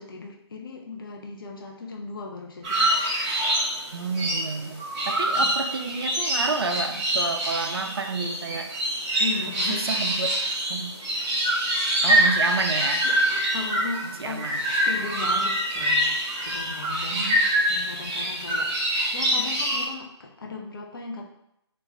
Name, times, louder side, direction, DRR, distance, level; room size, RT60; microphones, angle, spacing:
voice 1, 0.0-2.9 5.4-5.5 9.2-10.0 12.2-12.4 13.0-14.5 14.8-17.4 17.7-21.2, left 4 dB, 50° left, 0 dB, 0.5 m, -37 dB
sound 1, 2.6-19.8, right 1 dB, 15° right, 0.6 m, -25 dB
voice 2, 3.9-8.7 9.7-10.3 10.7-10.9 12.0-13.1 14.2-14.5 17.1-17.4, right 4 dB, 60° right, 6 dB, 0.4 m, -30 dB
2.4 x 2.3 x 3.2 m, 0.78 s
figure-of-eight pair, 145°, 15 cm